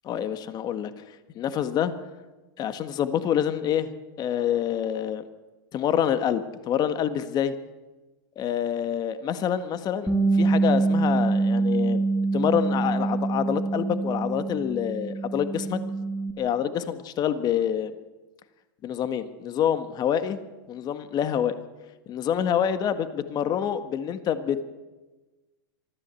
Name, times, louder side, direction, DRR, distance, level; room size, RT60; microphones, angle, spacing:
voice 1, 0.1-0.9 1.3-1.9 2.6-3.9 4.2-5.2 5.7-7.5 8.4-12.0 12.3-15.8 16.4-17.9 18.8-20.4 20.7-21.6 22.1-24.6, left 9 dB, 35° left, 11 dB, 1.6 m, -27 dB
Bass guitar, 10.1-16.3, right 3 dB, 5° left, 2.3 m, -25 dB
23.5 x 14.5 x 8.4 m, 1.2 s
supercardioid pair, 125°, 12 cm